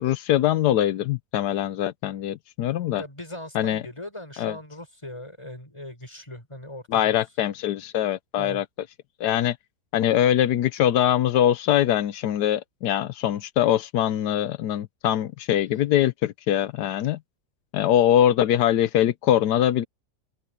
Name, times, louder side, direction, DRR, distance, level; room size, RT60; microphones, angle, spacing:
voice 1, 0.0-3.0 3.5-3.8 4.4-4.6 6.9-8.6 9.2-9.6 9.9-17.2 17.7-19.8, left 11 dB, 85° left, 1.3 m, -22 dB
voice 2, 3.0-7.1 8.4-8.6, left 1 dB, 15° left, 5.6 m, -39 dB
open air
omnidirectional pair, 1.7 m